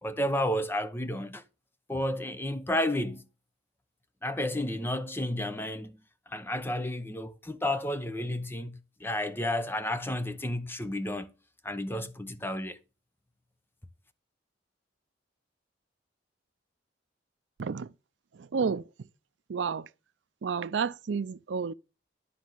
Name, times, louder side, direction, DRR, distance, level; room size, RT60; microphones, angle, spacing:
voice 1, 0.0-1.4 1.9-3.2 4.2-6.0 6.3-11.3 11.6-12.8, left 1 dB, 10° left, 0.8 m, -31 dB
voice 2, 18.4-18.9 19.5-19.9 20.4-21.7, right 5 dB, 75° right, 0.4 m, -30 dB
12.0 x 4.1 x 7.7 m
head